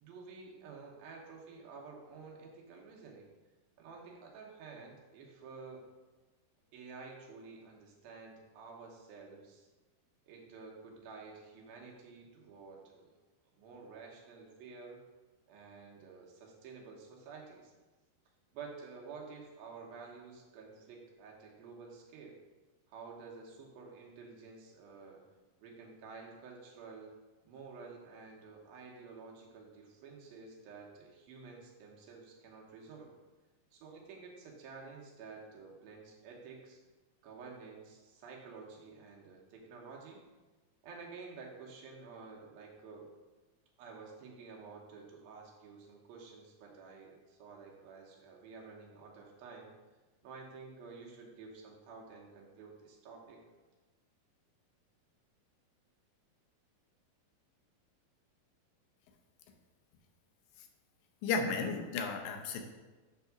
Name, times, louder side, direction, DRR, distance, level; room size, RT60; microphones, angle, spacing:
voice 1, 0.0-3.3 3.8-5.8 6.7-9.7 10.3-13.1 13.5-15.0 15.5-17.7 18.5-22.4 22.9-25.2 25.6-27.1 27.4-33.1 33.7-36.8 37.2-40.2 40.8-43.1 43.8-49.7 50.2-53.4, right 4 dB, 85° right, -1 dB, 3.0 m, -51 dB
voice 2, 61.2-62.6, left 4 dB, 80° left, 4 dB, 2.5 m, -33 dB
8.3 x 3.5 x 5.9 m, 1.2 s
omnidirectional pair, 4.1 m